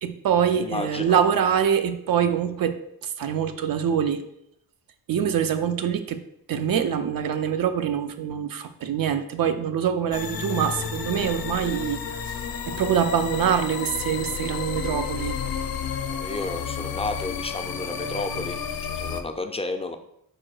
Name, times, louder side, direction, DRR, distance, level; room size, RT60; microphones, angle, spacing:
voice 1, 0.0-4.2 5.1-6.2 6.5-12.3 12.7-15.4, right 8 dB, 70° right, 9 dB, 0.5 m, -24 dB
voice 2, 0.6-1.2 16.1-20.0, left 2 dB, 15° left, 6 dB, 0.3 m, -32 dB
sound 1, 10.1-19.2, left 7 dB, 70° left, 0.5 m, -31 dB
4.8 x 2.2 x 4.6 m, 0.77 s
cardioid pair, 85°, 36 cm